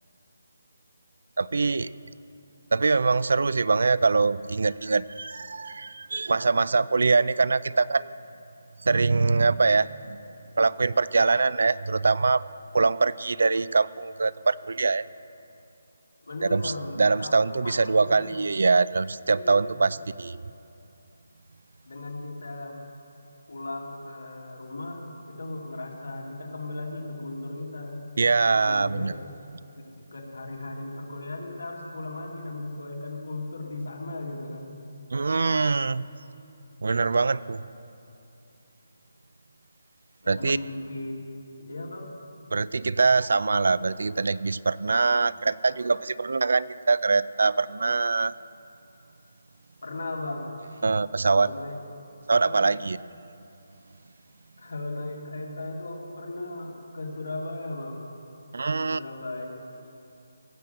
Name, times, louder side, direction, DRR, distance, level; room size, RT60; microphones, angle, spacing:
voice 1, 1.4-1.9 2.7-8.1 8.8-10.2 10.6-12.4 12.7-15.0 16.4-16.7 17.0-20.4 28.2-29.1 35.1-36.1 36.8-37.6 40.3-40.6 42.5-48.3 50.8-51.5 52.3-53.0 58.5-59.0, right 4 dB, 70° right, 18 dB, 0.4 m, -23 dB
voice 2, 16.2-18.3 19.3-19.9 21.9-22.8 23.5-28.0 28.6-29.1 29.7-34.8 40.2-41.1 41.6-42.2 49.8-50.5 51.2-51.8 52.4-52.7 54.6-58.0 58.8-59.5, left 2 dB, 85° left, -1 dB, 2.8 m, -37 dB
16.0 x 6.9 x 7.8 m, 2.7 s
hypercardioid pair, 170°, 0 cm